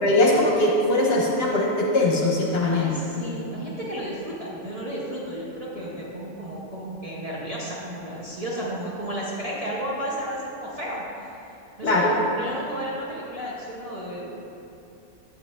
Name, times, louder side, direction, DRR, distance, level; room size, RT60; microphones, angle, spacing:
voice 1, 0.0-2.9 11.8-12.1, left 2 dB, 55° left, -3 dB, 1.1 m, -21 dB
voice 2, 2.7-11.4 11.8-14.4, equal, 35° right, -7 dB, 0.7 m, -33 dB
7.9 x 7.2 x 2.4 m, 2.8 s
omnidirectional pair, 1.4 m